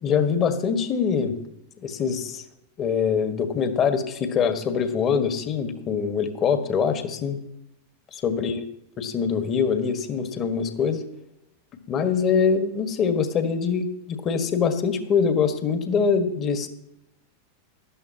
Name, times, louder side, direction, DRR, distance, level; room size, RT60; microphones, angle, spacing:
voice 1, 0.0-1.4 1.8-2.4 2.8-7.4 8.1-8.6 9.0-11.0 11.9-16.7, left 6 dB, 30° left, 8 dB, 1.7 m, -24 dB
18.5 x 13.0 x 3.0 m, 0.81 s
figure-of-eight pair, 90°, 0 cm